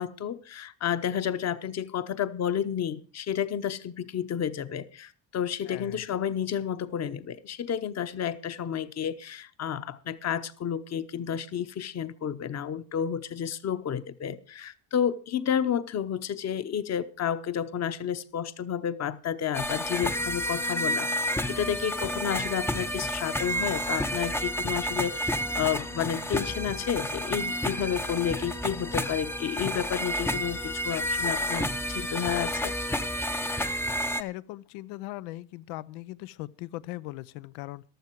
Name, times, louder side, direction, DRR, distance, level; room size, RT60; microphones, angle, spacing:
voice 1, 0.0-32.7, left 9 dB, 35° left, 1.0 m, -31 dB
voice 2, 5.6-6.0 34.2-37.8, left 17 dB, 90° left, 0.8 m, -39 dB
sound 1, 19.5-34.2, equal, 5° left, 0.6 m, -30 dB
15.0 x 12.0 x 4.6 m
cardioid pair, 130°, 46 cm